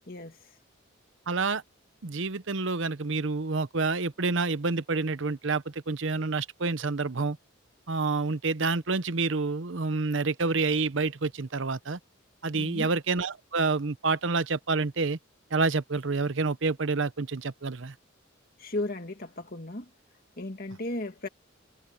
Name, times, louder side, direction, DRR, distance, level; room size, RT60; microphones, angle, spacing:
voice 1, 0.1-0.4 12.5-12.9 18.6-19.9 20.4-21.3, left 2 dB, 45° left, 2.1 m, -35 dB
voice 2, 1.3-1.6 2.0-7.4 7.9-12.0 12.4-15.2 15.5-17.9, right 3 dB, 65° right, 0.8 m, -28 dB
head